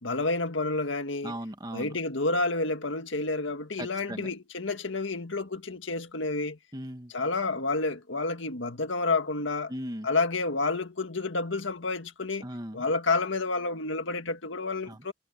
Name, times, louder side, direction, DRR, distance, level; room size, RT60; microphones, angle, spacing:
voice 1, 0.0-1.4 1.7-6.6 7.1-9.7 10.0-12.5 12.7-15.1, left 3 dB, 75° left, 1.8 m, -29 dB
voice 2, 1.2-1.9 3.8-4.3 6.7-7.1 9.7-10.1 12.4-12.8 14.9-15.0, equal, 20° right, 1.7 m, -38 dB
head